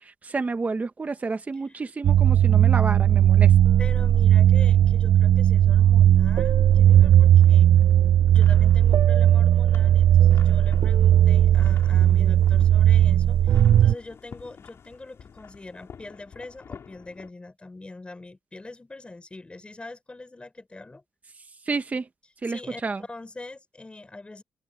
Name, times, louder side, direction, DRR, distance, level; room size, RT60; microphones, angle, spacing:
voice 1, 0.0-3.6 21.4-22.1 22.4-23.0, right 4 dB, 30° right, 1.1 m, -30 dB
sound 1, 2.0-13.9, right 11 dB, 65° right, 0.5 m, -17 dB
voice 2, 3.8-7.8 8.3-21.0 22.5-22.8 23.1-24.4, left 2 dB, 20° left, 4.9 m, -43 dB
sound 2, 6.5-17.3, left 7 dB, 55° left, 4.3 m, -49 dB
open air
cardioid pair, 105°, 6 cm